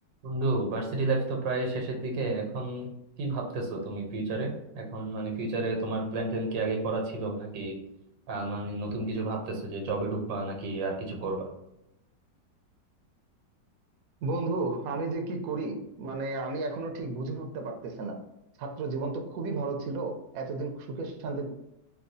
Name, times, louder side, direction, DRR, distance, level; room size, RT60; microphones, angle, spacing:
voice 1, 0.2-2.9 3.2-7.8 8.3-11.5, right 2 dB, 90° right, 1 dB, 1.6 m, -31 dB
voice 2, 14.2-18.2 18.6-21.5, right 3 dB, 65° right, 3 dB, 0.9 m, -33 dB
4.4 x 2.3 x 2.6 m, 0.85 s
omnidirectional pair, 1.9 m